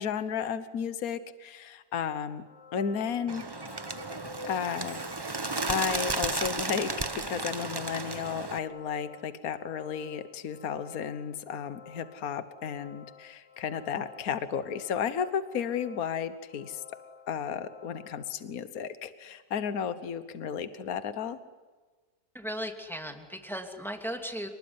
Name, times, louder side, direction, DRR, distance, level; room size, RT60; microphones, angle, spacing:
voice 1, 0.0-2.4 2.7-3.4 4.4-5.0 5.7-16.8 17.3-21.4, left 7 dB, 65° left, 11 dB, 1.6 m, -33 dB
sound 1, 2.3-18.3, left 7 dB, 45° left, 2.1 m, -53 dB
Bird, 3.3-8.6, right 3 dB, 20° right, 0.8 m, -33 dB
voice 2, 22.3-24.5, equal, ahead, 3 dB, 2.7 m, -36 dB
28.5 x 20.5 x 9.7 m, 1.3 s
omnidirectional pair, 1.7 m